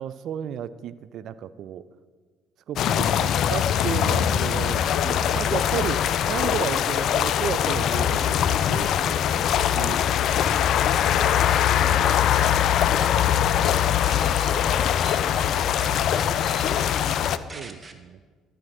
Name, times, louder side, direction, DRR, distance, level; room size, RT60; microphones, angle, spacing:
voice 1, 0.0-1.9 2.7-10.0 11.1-11.3 11.8-12.1 13.3-13.5 17.5-18.2, right 9 dB, 60° right, 15 dB, 0.3 m, -34 dB
sound 1, 2.8-17.4, left 9 dB, 60° left, 0.3 m, -22 dB
sound 2, 11.1-11.5 11.9-13.2 13.6-17.9, right 3 dB, 30° right, 1.0 m, -42 dB
voice 2, 15.2-17.7, left 1 dB, 25° left, -6 dB, 3.4 m, -46 dB
12.5 x 4.3 x 6.4 m, 1.5 s
hypercardioid pair, 60°, 0 cm